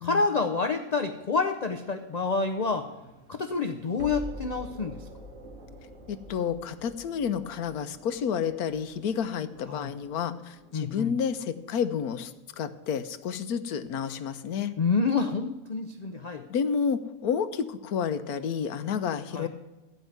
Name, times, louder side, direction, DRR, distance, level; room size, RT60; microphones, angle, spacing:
voice 1, 0.0-2.9 3.3-5.0 9.7-9.9 10.7-11.1 14.8-16.4 19.3-19.5, left 4 dB, 75° left, 7 dB, 0.3 m, -28 dB
sound 1, 2.2-13.2, equal, 55° right, 2.1 m, -47 dB
voice 2, 6.1-14.7 16.5-19.5, left 7 dB, 90° left, 11 dB, 1.2 m, -30 dB
13.5 x 5.4 x 9.3 m, 1.1 s
omnidirectional pair, 1.6 m